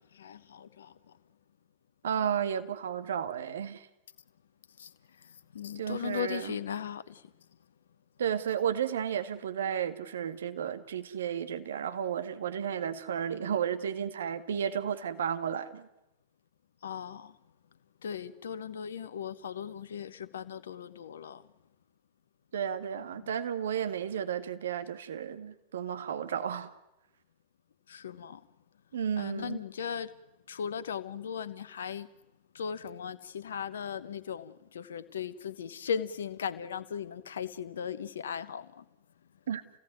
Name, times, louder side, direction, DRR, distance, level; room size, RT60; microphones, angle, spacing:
voice 1, 0.1-1.0 4.8-4.9 5.2-7.2 16.8-17.4 18.0-21.5 23.1-23.3 27.9-28.4 29.2-30.1 30.5-32.1 32.5-38.8, left 7 dB, 65° left, 1.2 m, -38 dB
voice 2, 2.0-3.9 5.8-6.6 8.2-15.9 22.5-26.7 28.9-29.6 39.5-39.6, right 8 dB, 65° right, 1.9 m, -33 dB
28.5 x 17.5 x 9.4 m
figure-of-eight pair, 90°, 0 cm